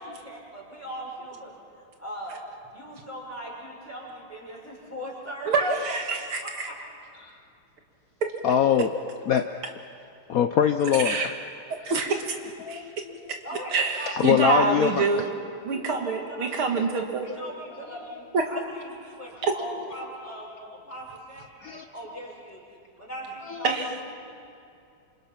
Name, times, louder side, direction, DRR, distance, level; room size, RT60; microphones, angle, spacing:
voice 1, 0.0-2.4 2.7-5.5 6.4-6.8 13.4-14.1 14.7-14.9 15.7-16.8 17.2-22.6 23.0-24.0, equal, 5° left, -4 dB, 5.9 m, -40 dB
voice 2, 5.5-6.4 11.0-11.3 11.8-12.4 12.7-13.0 13.7-15.3 15.6-17.3 18.3-18.4 19.4-19.5 23.6-23.9, right 4 dB, 75° right, 3 dB, 2.6 m, -25 dB
voice 3, 8.4-8.9 9.3-9.5 10.3-11.3 12.6-13.2 14.2-15.0 21.6-21.8 23.5-23.6, left 9 dB, 75° left, 7 dB, 0.8 m, -23 dB
28.0 x 26.5 x 5.9 m, 2.5 s
omnidirectional pair, 2.4 m